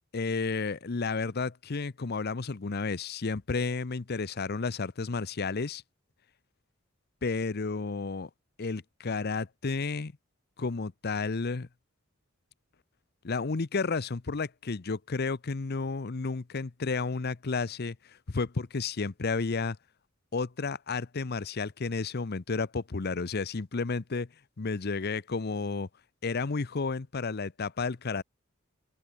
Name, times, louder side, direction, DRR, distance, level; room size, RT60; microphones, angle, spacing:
voice 1, 0.1-5.8 7.2-8.3 8.6-10.1 10.6-11.7 13.2-19.8 20.3-24.3 24.6-25.9 26.2-28.2, left 4 dB, 50° left, 0.7 m, -32 dB
open air
head